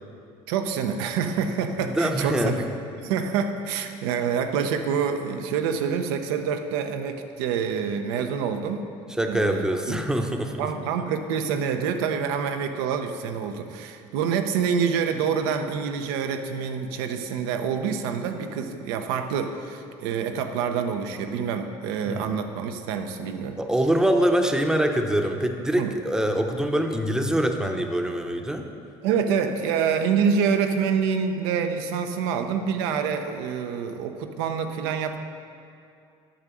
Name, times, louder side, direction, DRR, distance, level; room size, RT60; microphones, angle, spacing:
voice 1, 0.5-2.7 3.0-8.8 9.2-10.0 10.6-23.6 25.8-25.9 29.0-35.2, right 6 dB, 90° right, 6 dB, 0.8 m, -27 dB
voice 2, 2.0-2.6 9.2-10.6 22.0-22.3 23.6-28.6, right 1 dB, 5° right, 4 dB, 0.8 m, -24 dB
8.8 x 6.7 x 6.2 m, 2.5 s
supercardioid pair, 100°, 13 cm